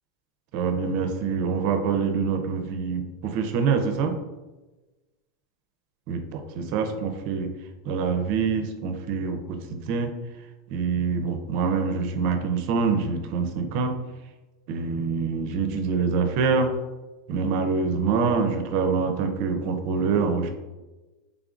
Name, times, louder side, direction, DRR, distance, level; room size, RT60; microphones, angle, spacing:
voice 1, 0.5-4.1 6.1-7.5 7.9-10.1 10.7-13.9 14.7-16.7 17.3-20.5, right 5 dB, 45° right, 7 dB, 0.5 m, -25 dB
3.5 x 3.4 x 2.5 m, 1.1 s
supercardioid pair, 155°, 3 cm